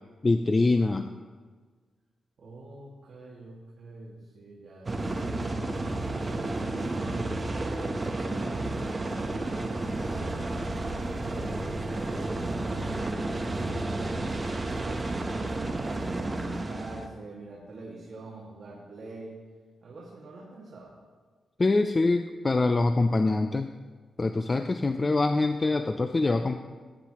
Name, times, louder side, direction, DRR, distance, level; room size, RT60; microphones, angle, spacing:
voice 1, 0.2-1.1 21.6-23.7 24.2-26.5, left 3 dB, 25° left, 7 dB, 0.4 m, -24 dB
voice 2, 2.4-13.0 13.4-15.1 15.4-19.3 19.8-20.9, right 2 dB, 60° right, -5 dB, 1.9 m, -45 dB
sound 1, 4.9-17.1, right 2 dB, 25° right, 0.9 m, -31 dB
15.0 x 9.6 x 3.0 m, 1.5 s
wide cardioid pair, 140°, 0 cm